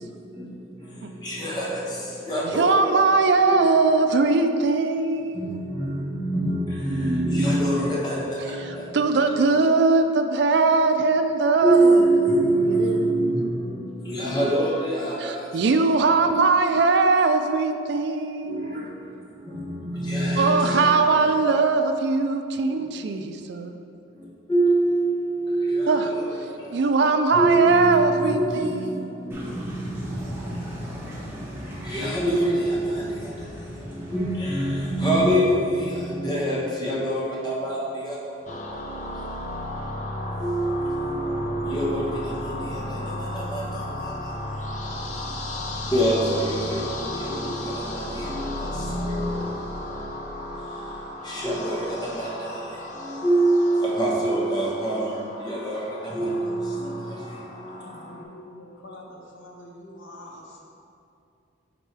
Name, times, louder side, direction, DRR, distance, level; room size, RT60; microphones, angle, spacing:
voice 1, 1.2-1.8 2.3-3.0 3.4-3.7 5.3-8.9 11.6-15.4 15.7-15.9 18.5-18.9 19.5-21.1 24.5-26.5 27.3-29.7 31.8-33.0 34.1-38.2 40.4-43.8 45.9-49.4 51.2-52.5 53.0-55.1 55.4-55.8 56.1-57.1, right 1 dB, 20° left, -6 dB, 1.1 m, -25 dB
voice 2, 2.6-5.6 8.9-12.3 12.8-13.5 15.2-19.0 20.4-23.7 25.9-26.1 26.7-29.0, right 3 dB, 60° right, 7 dB, 0.3 m, -21 dB
sound 1, 29.3-35.2, equal, 10° right, 0.9 m, -37 dB
sound 2, 38.5-58.2, left 1 dB, 40° left, 0.5 m, -34 dB
voice 3, 57.8-60.6, left 1 dB, 75° left, -2 dB, 1.1 m, -44 dB
7.7 x 4.4 x 3.3 m, 2.5 s
head